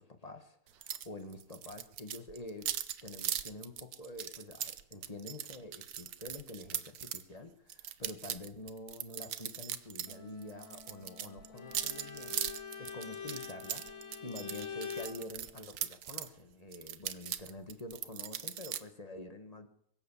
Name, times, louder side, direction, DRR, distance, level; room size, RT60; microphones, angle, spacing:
voice 1, 0.0-2.7 3.0-19.7, left 2 dB, 20° left, 7 dB, 1.3 m, -47 dB
sound 1, 0.8-1.1 1.3-7.2 7.7-10.2 10.4-16.3 16.7-18.8, right 10 dB, 60° right, 1.2 m, -39 dB
Wind instrument woodwind instrument, 10.1-15.6, left 3 dB, 55° left, 3.5 m, -58 dB
Bowed string instrument, 11.5-15.2, left 7 dB, 90° left, 2.5 m, -44 dB
23.0 x 7.9 x 7.1 m, 0.69 s
omnidirectional pair, 2.0 m